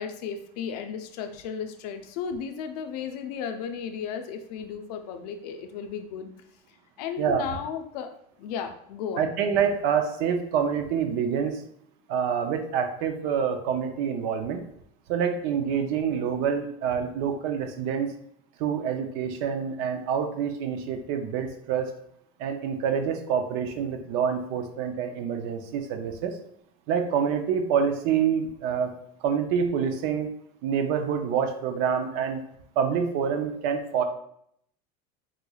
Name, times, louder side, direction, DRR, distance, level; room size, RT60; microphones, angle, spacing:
voice 1, 0.0-6.3 7.0-8.1 8.4-9.4, left 7 dB, 85° left, 6 dB, 0.5 m, -34 dB
voice 2, 9.2-11.6 12.1-14.6 15.1-18.1 18.6-21.9 22.4-26.4 26.9-30.3 30.6-32.4 32.8-34.0, right 7 dB, 50° right, 7 dB, 0.4 m, -27 dB
3.7 x 3.1 x 2.3 m, 0.69 s
cardioid pair, 175°, 20 cm